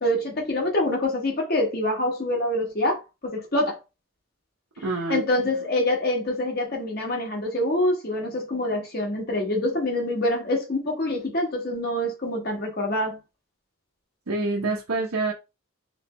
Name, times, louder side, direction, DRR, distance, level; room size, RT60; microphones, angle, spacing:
voice 1, 0.0-3.8 5.1-13.2, left 1 dB, 40° left, 1.2 m, -25 dB
voice 2, 4.8-5.2 14.3-15.3, right 3 dB, 75° right, 1.0 m, -26 dB
3.2 x 3.2 x 3.1 m
head